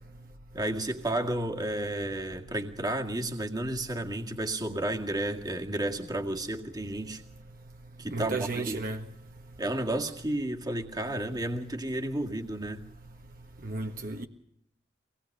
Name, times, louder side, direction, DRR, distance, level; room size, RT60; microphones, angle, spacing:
voice 1, 0.5-7.2 8.0-8.8 9.6-12.8, right 1 dB, 25° right, 2.0 m, -32 dB
voice 2, 8.1-9.0 13.6-14.3, right 3 dB, 55° right, 1.6 m, -33 dB
24.5 x 19.0 x 6.6 m
head